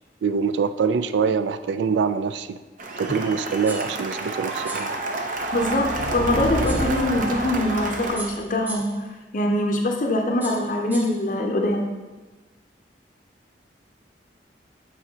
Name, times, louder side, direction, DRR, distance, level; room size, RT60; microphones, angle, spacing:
voice 1, 0.2-2.6 3.0-4.9, right 5 dB, 80° right, 12 dB, 0.3 m, -24 dB
Cheering / Applause, 2.8-8.2, right 2 dB, 50° right, 0.7 m, -30 dB
sound 1, 3.7-4.0 4.7-5.0 6.7-7.0 8.2-9.1 10.4-11.3, right 2 dB, 10° right, 0.7 m, -38 dB
sound 2, 5.4-8.4, equal, 80° left, 0.7 m, -30 dB
voice 2, 5.5-8.9 9.3-11.9, left 1 dB, 45° left, 1 dB, 0.6 m, -23 dB
8.6 x 4.1 x 2.8 m, 1.2 s
head